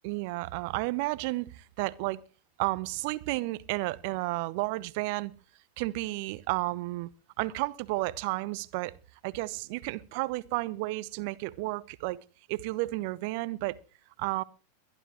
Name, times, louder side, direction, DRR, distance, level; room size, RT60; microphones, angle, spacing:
voice 1, 0.0-2.2 2.6-5.3 5.8-7.1 7.4-8.9 9.2-12.2 12.5-13.8 14.2-14.4, right 21 dB, 45° right, 0.9 m, -32 dB
22.0 x 12.5 x 3.1 m
figure-of-eight pair, 90°, 0 cm